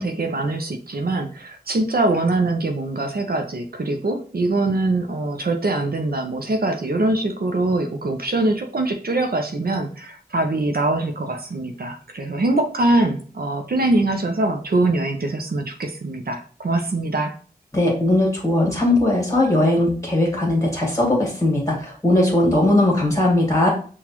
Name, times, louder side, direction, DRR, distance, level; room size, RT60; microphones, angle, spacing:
voice 1, 0.0-17.4, right 2 dB, 65° right, 5 dB, 0.6 m, -23 dB
voice 2, 17.7-23.7, left 1 dB, 20° left, -2 dB, 1.7 m, -19 dB
5.9 x 2.4 x 2.9 m, 0.43 s
wide cardioid pair, 65°, 17 cm